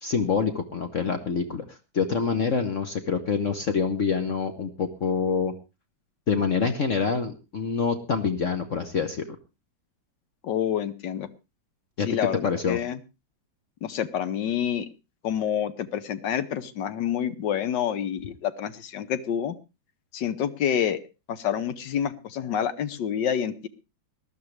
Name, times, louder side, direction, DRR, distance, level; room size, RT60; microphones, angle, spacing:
voice 1, 0.0-5.5 6.3-9.4 12.0-12.1 12.4-12.8, left 5 dB, 50° left, 7 dB, 1.2 m, -26 dB
voice 2, 10.4-11.3 12.1-13.0 13.8-14.9 15.2-19.6 20.1-21.0 21.3-23.7, left 9 dB, 70° left, 13 dB, 1.5 m, -28 dB
19.5 x 12.0 x 3.2 m, 0.27 s
omnidirectional pair, 2.0 m